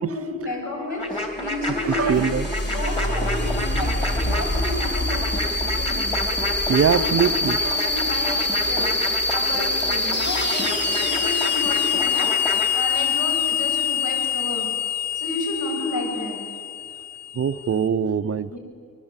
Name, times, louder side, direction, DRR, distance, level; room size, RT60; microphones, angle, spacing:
voice 1, 0.0-2.3 2.7-6.2 6.7-7.1 7.6-10.7 10.9-14.7 15.1-16.4 18.5-18.6, left 2 dB, 70° left, 0 dB, 7.7 m, -31 dB
sound 1, 1.0-12.7, left 1 dB, 20° left, 3.1 m, -30 dB
sound 2, 1.3-17.7, left 4 dB, 35° left, 2.1 m, -25 dB
voice 2, 1.8-2.5 6.7-7.8 8.3-8.4 17.3-18.6, right 7 dB, 45° right, 13 dB, 0.6 m, -22 dB
25.5 x 22.0 x 8.9 m, 2.4 s
wide cardioid pair, 175°, 32 cm